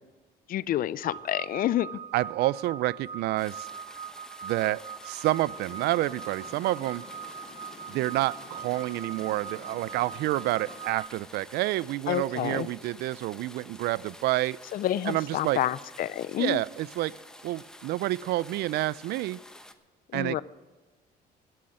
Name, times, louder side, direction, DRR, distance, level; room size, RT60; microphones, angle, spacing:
voice 1, 0.5-1.9 12.1-12.7 14.7-16.6 20.1-20.4, left 12 dB, 55° left, 19 dB, 0.5 m, -28 dB
sound 1, 1.0-11.1, right 7 dB, 45° right, 1.4 m, -42 dB
voice 2, 2.1-3.7 4.4-7.1 7.9-14.6 15.1-15.6 16.4-17.1 17.4-19.4 20.1-20.4, right 16 dB, 75° right, 22 dB, 0.4 m, -29 dB
sound 2, 3.4-19.7, left 1 dB, 5° left, 1.0 m, -50 dB
Water, 5.5-10.9, left 6 dB, 40° left, 0.9 m, -50 dB
11.5 x 11.0 x 7.6 m, 1.3 s
cardioid pair, 110°, 17 cm